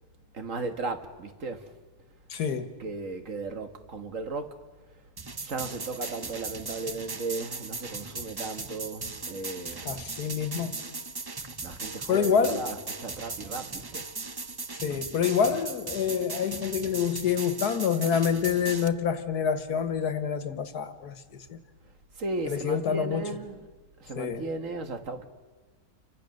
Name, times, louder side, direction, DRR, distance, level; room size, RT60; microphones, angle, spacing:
voice 1, 0.3-1.8 2.8-4.6 5.4-10.2 11.6-14.1 22.2-23.7 24.0-25.3, right 3 dB, 55° right, 1.9 m, -36 dB
voice 2, 2.3-2.7 9.9-10.7 12.1-12.7 14.7-21.6 22.5-23.2 24.2-24.5, left 7 dB, 85° left, 1.9 m, -27 dB
sound 1, 5.2-18.9, right 3 dB, 35° right, 0.4 m, -38 dB
30.0 x 24.5 x 6.6 m
omnidirectional pair, 1.6 m